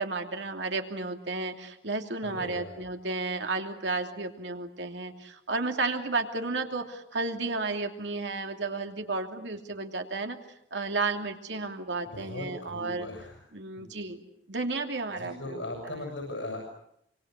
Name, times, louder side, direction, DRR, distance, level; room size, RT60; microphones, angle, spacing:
voice 1, 0.0-10.4 10.7-13.1 13.5-16.0, right 3 dB, 70° right, 4 dB, 2.9 m, -33 dB
voice 2, 2.2-2.7 12.0-13.4 13.8-13.9 15.2-16.6, left 1 dB, 80° left, 1 dB, 7.6 m, -38 dB
26.0 x 25.0 x 8.2 m, 0.76 s
head